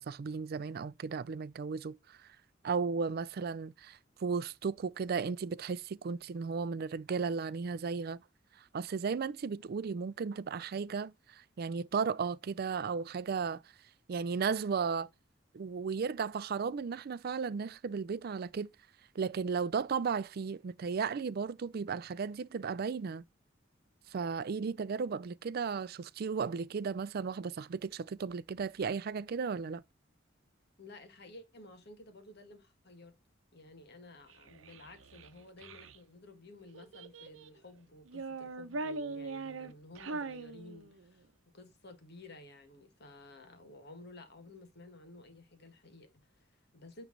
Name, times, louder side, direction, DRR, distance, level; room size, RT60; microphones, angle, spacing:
voice 1, 0.0-2.2 2.6-8.2 8.7-13.6 14.1-15.1 15.5-18.7 19.2-23.2 24.1-29.8, right 5 dB, 50° right, 0.4 m, -35 dB
voice 2, 30.8-33.1 33.5-41.3 41.5-47.0, left 2 dB, 55° left, 1.7 m, -53 dB
Child speech kid speaking, 34.3-36.0 36.7-37.6 38.0-41.2, right 3 dB, 85° right, 0.8 m, -41 dB
9.2 x 3.2 x 3.9 m
head